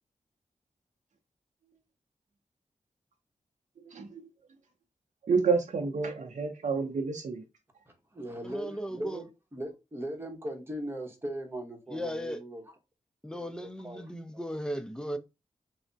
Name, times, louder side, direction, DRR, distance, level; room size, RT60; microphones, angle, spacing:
voice 1, 3.8-4.3 5.2-7.4, right 5 dB, 65° right, 0.6 m, -29 dB
voice 2, 7.9-12.7 13.3-14.5, right 1 dB, 15° right, 0.9 m, -40 dB
voice 3, 8.4-9.2 11.9-12.4 13.2-15.2, equal, 5° left, 0.4 m, -36 dB
3.3 x 2.0 x 2.6 m
wide cardioid pair, 80°, 13 cm